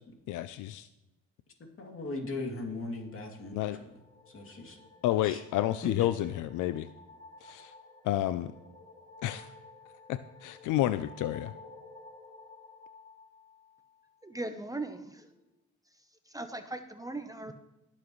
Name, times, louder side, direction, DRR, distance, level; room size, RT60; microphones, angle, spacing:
voice 1, 0.3-0.9 3.5-3.8 5.0-6.9 7.4-7.7 8.0-8.5 9.2-9.5 10.1-11.5, left 13 dB, 80° left, 13 dB, 0.5 m, -30 dB
voice 2, 1.8-3.7 4.3-4.8 5.2-5.4 5.8-6.1, left 2 dB, 45° left, 1 dB, 2.7 m, -38 dB
sound 1, 2.9-14.3, left 3 dB, 20° left, 2.5 m, -54 dB
voice 3, 14.2-15.1 16.3-17.5, right 2 dB, 10° right, 7 dB, 0.8 m, -38 dB
20.0 x 7.4 x 3.1 m, 0.96 s
cardioid pair, 90°, 30 cm